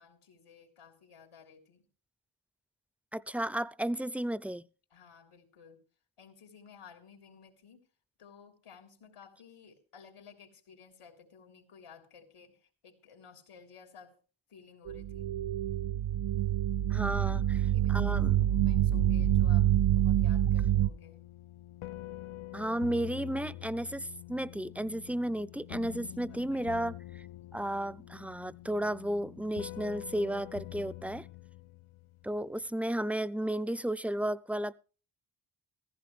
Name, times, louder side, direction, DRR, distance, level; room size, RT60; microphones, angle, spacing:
voice 1, 0.0-1.9 4.9-5.8 6.2-7.8 8.2-14.1 14.5-15.3 17.2-17.4 17.7-18.2 18.5-19.7 20.0-21.2 26.2-26.8, left 6 dB, 90° left, 3.6 m, -55 dB
voice 2, 3.1-4.6 16.9-17.6 17.9-18.4 22.5-27.0 27.5-31.3 32.2-34.7, right 1 dB, 5° right, 0.5 m, -33 dB
sound 1, 14.9-20.9, right 12 dB, 70° right, 0.5 m, -27 dB
sound 2, 17.0-32.5, left 16 dB, 75° left, 0.7 m, -46 dB
15.5 x 15.0 x 3.3 m
wide cardioid pair, 80°, 50 cm